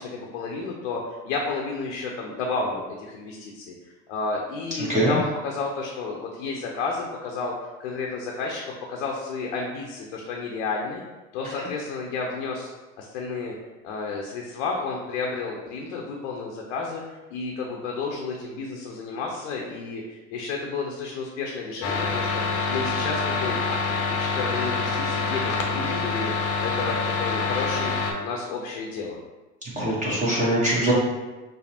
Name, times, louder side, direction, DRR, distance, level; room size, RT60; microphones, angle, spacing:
voice 1, 0.0-7.5 7.8-8.6 8.9-11.0 11.3-12.7 13.0-13.5 13.8-23.6 23.8-27.9 28.2-29.2, left 4 dB, 75° left, -1 dB, 0.7 m, -31 dB
sound 1, 21.8-28.1, left 4 dB, 40° left, 0.7 m, -26 dB
voice 2, 29.8-30.9, right 1 dB, 20° right, -6 dB, 1.0 m, -22 dB
5.2 x 2.0 x 2.8 m, 1.1 s
hypercardioid pair, 80°, 37 cm